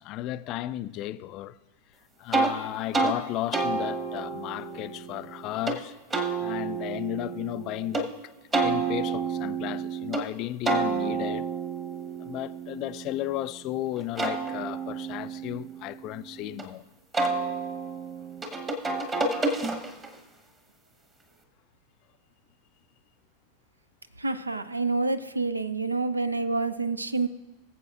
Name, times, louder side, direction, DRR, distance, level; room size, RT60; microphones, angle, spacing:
voice 1, 0.0-1.6 2.2-6.0 6.4-8.2 8.6-11.5 12.2-16.8, left 14 dB, 40° left, 0.3 m, -34 dB
sound 1, 2.3-2.5 2.9-3.2 3.5-5.8 6.1-8.0 8.5-10.2 10.7-13.5 14.0-16.6 17.1-20.2, right 4 dB, 20° right, 1.2 m, -30 dB
voice 2, 24.2-27.3, right 3 dB, 80° right, 0.5 m, -28 dB
20.5 x 7.5 x 2.5 m
figure-of-eight pair, 90°, 0 cm